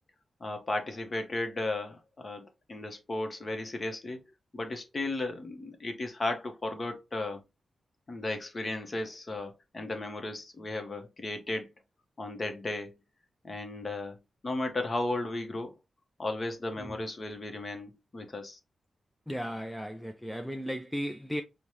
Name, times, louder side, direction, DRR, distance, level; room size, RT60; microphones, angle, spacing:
voice 1, 0.4-4.2 4.5-7.4 8.1-11.7 12.2-13.0 13.4-14.2 14.4-15.7 16.2-18.6, left 2 dB, 30° left, 0.8 m, -35 dB
voice 2, 19.3-21.4, equal, ahead, 0.3 m, -35 dB
5.2 x 2.1 x 3.0 m
wide cardioid pair, 135°, 0 cm